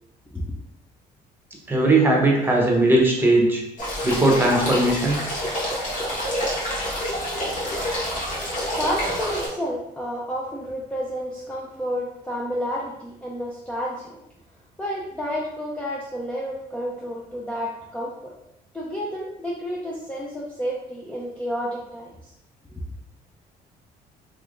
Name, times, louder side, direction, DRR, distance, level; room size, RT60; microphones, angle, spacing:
voice 1, 1.7-3.6 4.0-5.2, right 2 dB, 10° right, -1 dB, 0.9 m, -18 dB
sound 1, 3.8-9.5, equal, 50° left, 1.4 m, -27 dB
voice 2, 8.7-14.2 14.8-18.3 18.7-22.3, equal, 5° left, -4 dB, 0.5 m, -30 dB
3.4 x 3.2 x 2.5 m, 0.81 s
cardioid pair, 110°, 17 cm